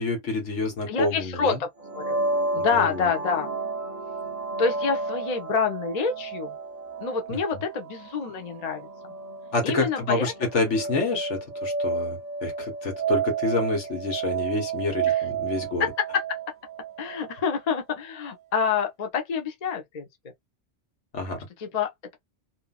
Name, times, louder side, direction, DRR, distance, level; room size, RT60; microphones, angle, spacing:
voice 1, 0.0-1.6 2.6-3.1 7.3-7.6 9.5-15.8 21.1-21.4, left 3 dB, 70° left, 1.6 m, -28 dB
voice 2, 0.9-1.7 1.9-2.2 2.5-3.5 4.6-6.5 7.0-8.9 9.6-10.3 15.1-15.2 15.8-15.9 17.0-20.0 21.6-22.2, left 5 dB, 40° left, 0.6 m, -27 dB
sound 1, 1.8-17.4, right 4 dB, 40° right, 0.8 m, -31 dB
2.7 x 2.6 x 2.3 m
omnidirectional pair, 1.2 m